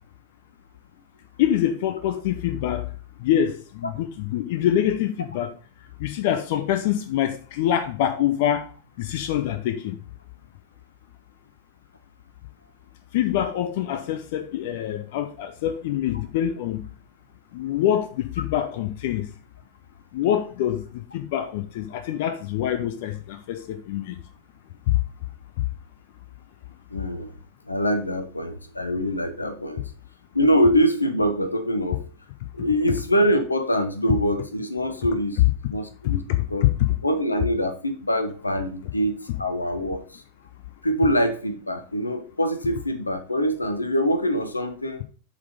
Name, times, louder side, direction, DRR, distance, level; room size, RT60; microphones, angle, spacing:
voice 1, 1.4-2.9 3.2-5.5 6.0-8.7 9.0-10.0 13.1-16.8 17.5-19.3 20.1-24.2 24.9-25.0 25.6-25.7 36.3-36.7, left 11 dB, 50° left, 0.6 m, -25 dB
voice 2, 26.9-27.3 27.6-29.8 30.3-32.0 32.5-35.4 35.7-36.2 36.5-36.6 37.0-40.2 40.8-45.0, equal, 80° left, 0.9 m, -24 dB
7.4 x 4.2 x 5.1 m
figure-of-eight pair, 90°, 0 cm